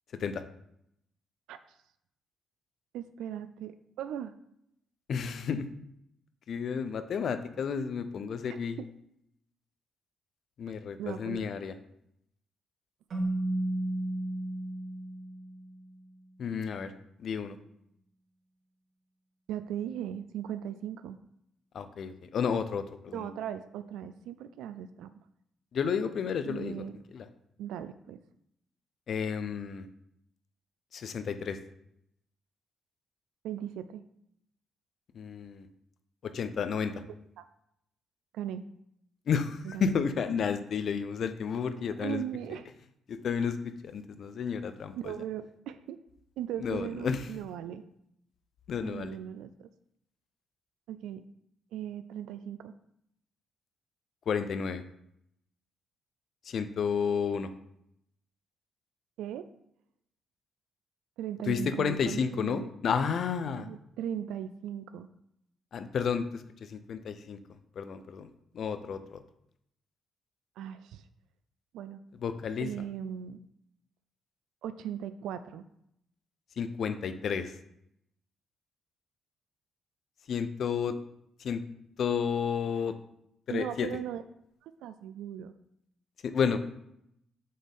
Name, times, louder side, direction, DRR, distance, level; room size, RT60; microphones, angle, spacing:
voice 1, 2.9-4.3 11.0-11.5 19.5-21.2 23.1-25.1 26.5-27.0 27.6-28.2 33.4-34.0 37.4-37.5 38.3-38.7 39.6-40.0 41.8-42.7 45.0-46.0 46.4-47.8 48.8-49.7 50.9-51.2 51.7-52.8 59.2-59.5 61.2-62.7 63.6-65.1 70.6-71.0 71.7-72.0 72.6-73.4 74.6-75.6 83.5-84.2 84.6-85.5, right 10 dB, 90° right, 11 dB, 0.3 m, -38 dB
voice 2, 5.1-5.7 6.5-8.8 10.6-11.7 16.4-16.9 17.2-17.6 21.7-23.3 25.7-26.8 27.1-27.3 29.1-29.8 30.9-31.6 35.1-35.7 36.2-37.0 39.3-42.2 43.1-45.1 46.6-47.3 48.7-49.2 54.3-54.8 56.5-57.5 61.5-63.7 65.7-67.4 67.8-68.3 68.5-69.2 72.2-72.7 76.6-77.5 80.3-81.0 81.4-81.6 82.0-82.9 83.5-83.9 86.2-86.6, left 6 dB, 60° left, 10 dB, 0.6 m, -31 dB
Keyboard (musical), 13.1-15.8, right 1 dB, 60° right, 2.3 m, -33 dB
7.4 x 4.2 x 3.6 m, 0.76 s
cardioid pair, 90°, 0 cm